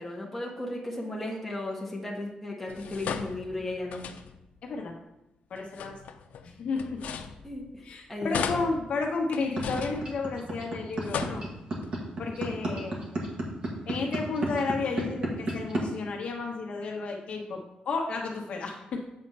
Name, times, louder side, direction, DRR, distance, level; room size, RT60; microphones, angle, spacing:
voice 1, 0.0-4.0 7.4-8.6, left 1 dB, 5° left, -3 dB, 1.3 m, -35 dB
sound 1, 2.7-4.6 5.5-7.9 8.3-10.6 10.9-11.9, left 7 dB, 90° left, 0.5 m, -37 dB
voice 2, 4.6-4.9 5.5-5.9 6.4-7.0 7.8-11.4 12.2-13.0 13.9-19.0, left 4 dB, 55° left, 1 dB, 1.2 m, -32 dB
sound 2, 9.6-15.8, right 2 dB, 40° right, 1.6 m, -30 dB
8.0 x 4.3 x 5.5 m, 0.88 s
wide cardioid pair, 180°, 3 cm